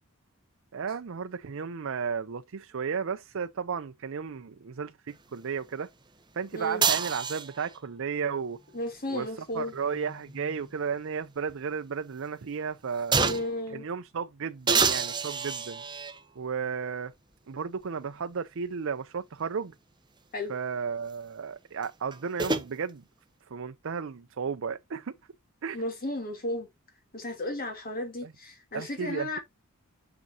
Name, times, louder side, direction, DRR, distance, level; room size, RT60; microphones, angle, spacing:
voice 1, 0.7-5.9 6.4-8.6 9.1-9.3 9.5-13.3 13.7-15.8 16.4-17.1 17.5-19.7 20.5-23.0 23.5-25.1 25.6-25.8 28.2-28.3 28.7-29.4, right 6 dB, 65° right, 0.5 m, -34 dB
voice 2, 6.5-6.8 8.7-9.7 13.1-13.9 20.3-20.5 25.7-26.7 27.1-29.4, left 1 dB, 45° left, 3.0 m, -34 dB
sound 1, 6.8-7.8 9.5-11.1 11.5-11.6 13.1-13.6 14.7-16.2 17.1-17.2 21.8-22.7, right 5 dB, 20° right, 0.8 m, -28 dB
6.7 x 6.0 x 2.8 m
head